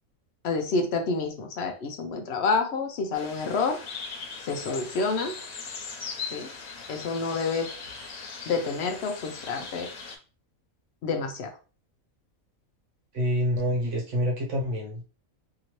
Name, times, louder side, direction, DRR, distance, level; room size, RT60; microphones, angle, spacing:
voice 1, 0.4-3.8 4.4-5.3 6.3-6.5 6.9-7.7 8.5-9.9 11.0-11.5, left 4 dB, 65° left, 5 dB, 0.6 m, -28 dB
sound 1, 3.1-10.2, left 5 dB, 85° left, 1.2 m, -39 dB
voice 2, 13.1-15.1, equal, 60° right, -1 dB, 1.3 m, -27 dB
2.9 x 2.6 x 3.0 m, 0.36 s
omnidirectional pair, 1.5 m